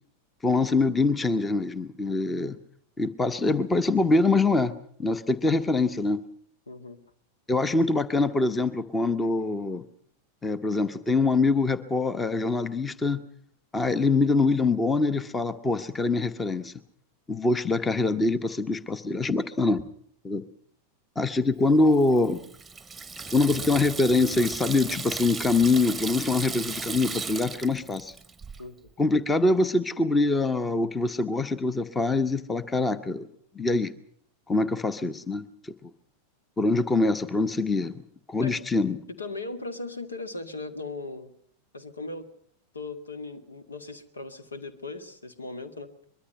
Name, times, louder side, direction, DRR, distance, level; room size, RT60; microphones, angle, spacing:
voice 1, 0.4-2.6 3.0-4.7 5.0-6.2 7.5-9.8 10.4-13.2 13.7-16.7 17.3-19.8 20.2-20.4 21.2-22.4 23.3-28.1 29.0-33.3 33.5-33.9 34.5-35.9 36.6-38.0 38.3-39.0, left 3 dB, 15° left, 15 dB, 1.1 m, -24 dB
voice 2, 6.7-7.0 28.6-28.9 38.4-38.5 39.2-41.3 41.7-42.3 42.7-45.9, left 3 dB, 75° left, 10 dB, 2.1 m, -38 dB
Water tap faucet / Sink (filling or washing), 21.9-28.6, right 4 dB, 10° right, 1.2 m, -36 dB
23.5 x 22.5 x 5.6 m, 0.63 s
figure-of-eight pair, 90°, 0 cm